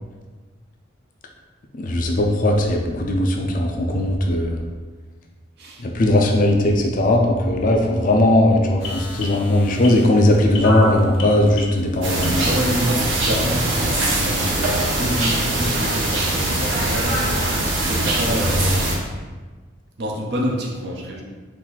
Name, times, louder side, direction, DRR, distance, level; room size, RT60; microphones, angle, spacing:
voice 1, 1.7-4.6 5.8-12.5, left 1 dB, 45° left, 2 dB, 0.5 m, -18 dB
sound 1, 8.8-12.8 13.4-13.5, left 2 dB, 80° left, 1.0 m, -30 dB
sound 2, 12.0-19.0, right 1 dB, 80° right, 0.9 m, -22 dB
voice 2, 12.4-17.2 17.7-19.0 20.0-21.2, equal, 55° right, -1 dB, 0.7 m, -27 dB
4.3 x 2.6 x 4.0 m, 1.3 s
head